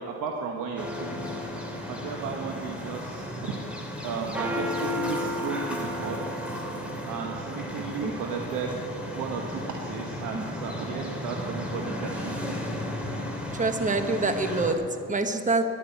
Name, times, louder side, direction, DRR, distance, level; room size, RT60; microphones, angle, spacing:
voice 1, 0.0-1.3 1.9-3.3 4.0-6.5 7.1-8.8 9.1-12.6, right 5 dB, 90° right, 1 dB, 1.2 m, -34 dB
sound 1, 0.8-14.7, left 1 dB, 5° right, 3.0 m, -33 dB
voice 2, 7.8-8.1 10.3-10.5 13.5-15.6, right 3 dB, 25° right, 7 dB, 1.2 m, -26 dB
11.0 x 9.8 x 8.4 m, 2.4 s
cardioid pair, 90°, 30 cm